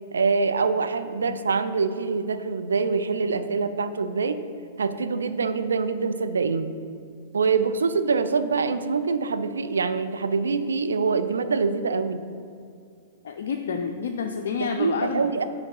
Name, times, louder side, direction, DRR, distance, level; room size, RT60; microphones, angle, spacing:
voice 1, 0.1-4.4 4.8-6.7 7.3-12.2 14.7-15.4, right 4 dB, 85° right, 11 dB, 0.3 m, -25 dB
voice 2, 13.2-15.4, left 5 dB, 70° left, 3 dB, 0.4 m, -29 dB
5.8 x 3.7 x 5.4 m, 2.4 s
hypercardioid pair, 110°, 0 cm